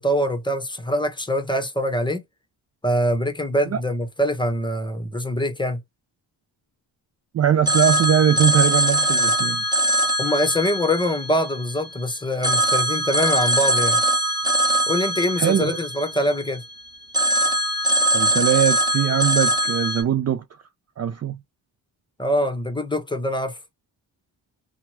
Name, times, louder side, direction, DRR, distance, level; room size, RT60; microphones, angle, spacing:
voice 1, 0.0-2.2 2.8-5.8 10.2-14.0 14.9-16.6 22.2-23.6, equal, 10° left, 1.1 m, -24 dB
voice 2, 7.3-9.6 15.4-15.8 18.1-20.4 21.0-21.4, right 9 dB, 35° right, 0.4 m, -21 dB
Telephone, 7.7-11.9 12.4-16.7 17.1-20.0, right 1 dB, 10° right, 1.3 m, -22 dB
2.9 x 2.4 x 2.9 m
supercardioid pair, 50°, 48 cm